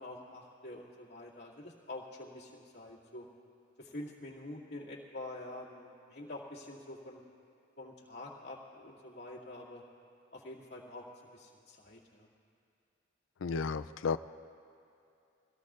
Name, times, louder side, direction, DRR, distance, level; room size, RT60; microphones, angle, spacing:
voice 1, 0.0-3.3 3.8-7.2 7.8-9.8 10.3-11.0 11.3-12.3, left 1 dB, 55° left, -5 dB, 2.4 m, -46 dB
voice 2, 13.4-14.2, left 5 dB, 70° left, 12 dB, 0.4 m, -33 dB
24.0 x 17.5 x 2.5 m, 2.6 s
head